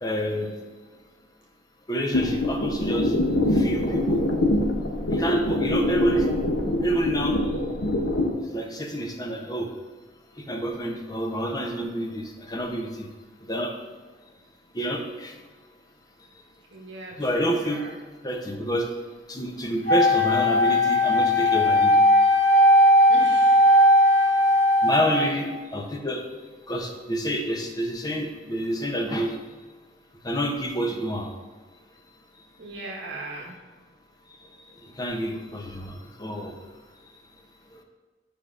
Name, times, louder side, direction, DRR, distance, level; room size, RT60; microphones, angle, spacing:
voice 1, 0.0-0.5 1.9-3.1 3.5-4.2 5.1-6.3 6.8-7.4 8.4-9.7 10.4-13.1 13.5-13.7 14.7-15.3 17.2-17.8 18.2-18.9 19.3-22.0 24.8-26.2 26.7-29.4 30.2-31.3 35.0-36.6 37.7-37.8, equal, 20° left, 3 dB, 0.7 m, -28 dB
sound 1, 2.1-8.3, left 1 dB, 80° left, 0.8 m, -24 dB
voice 2, 16.7-17.9 23.1-23.6 25.1-25.4 32.6-33.6, right 2 dB, 75° right, -1 dB, 0.9 m, -39 dB
Wind instrument woodwind instrument, 19.9-25.3, left 1 dB, 65° left, 1.5 m, -18 dB
8.1 x 5.1 x 2.5 m, 1.4 s
head